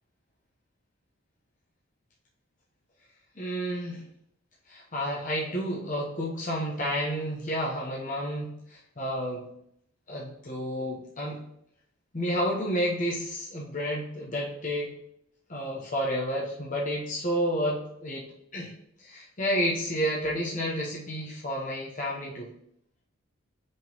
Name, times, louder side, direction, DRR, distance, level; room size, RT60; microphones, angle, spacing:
voice 1, 3.4-4.0 4.7-9.5 10.1-11.4 12.1-14.9 15.5-18.3 18.5-18.7 19.0-22.5, equal, 40° left, -3 dB, 1.0 m, -30 dB
5.4 x 3.9 x 5.3 m, 0.72 s
head